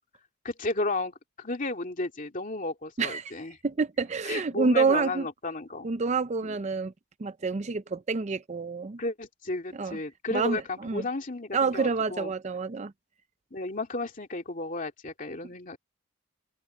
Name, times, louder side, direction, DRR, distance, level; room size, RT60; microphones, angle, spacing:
voice 1, 0.4-3.5 4.3-5.9 6.4-6.6 9.0-12.3 13.5-15.8, left 2 dB, 40° left, 2.5 m, -33 dB
voice 2, 3.0-3.3 3.6-5.3 5.8-6.9 7.2-9.0 9.7-10.0 10.3-11.0 11.5-12.9, right 4 dB, 30° right, 0.5 m, -28 dB
open air
head